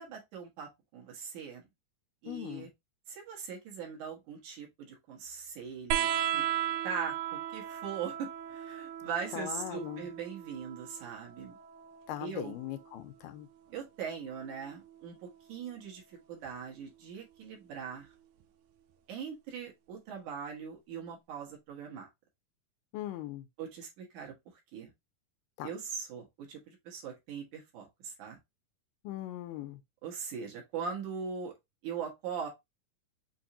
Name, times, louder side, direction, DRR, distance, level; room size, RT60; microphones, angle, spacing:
voice 1, 0.0-1.7 2.2-2.7 3.1-6.1 6.3-6.4 6.8-11.6 12.2-12.6 13.7-18.1 19.1-22.1 23.6-24.3 24.7-24.9 25.6-28.4 30.0-31.5 31.8-32.5, right 6 dB, 65° right, 2.5 m, -41 dB
voice 2, 2.3-2.7 9.3-10.1 12.1-13.5 22.9-23.5 25.6-25.7 29.0-29.8, left 13 dB, 85° left, 2.3 m, -40 dB
sound 1, 5.9-13.0 14.3-15.2 16.5-16.6, right 11 dB, 85° right, 1.6 m, -36 dB
6.2 x 2.6 x 2.7 m
omnidirectional pair, 3.9 m